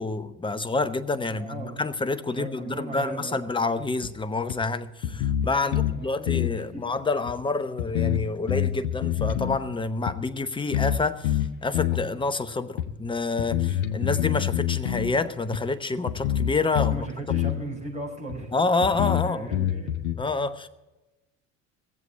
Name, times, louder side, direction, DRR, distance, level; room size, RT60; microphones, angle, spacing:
voice 1, 0.0-17.1 18.5-19.7 20.2-20.7, left 3 dB, 10° left, 0.9 m, -28 dB
voice 2, 1.3-1.8 2.4-3.4 5.6-6.3 6.7-6.9 16.9-18.5 19.0-19.9, right 2 dB, 15° right, 5.2 m, -37 dB
sound 1, 4.0-4.1 4.5-4.6 5.0-6.0 6.3-6.5 7.3-7.4 7.8-9.6 10.1-10.2 10.7-11.0 11.2-12.0 12.8-12.9 13.4-15.2 15.5-15.6 16.1-17.0 17.3-17.6 18.3-18.4 18.8-20.2, left 11 dB, 75° left, 1.1 m, -26 dB
17.0 x 7.7 x 8.5 m
figure-of-eight pair, 65°, 40 cm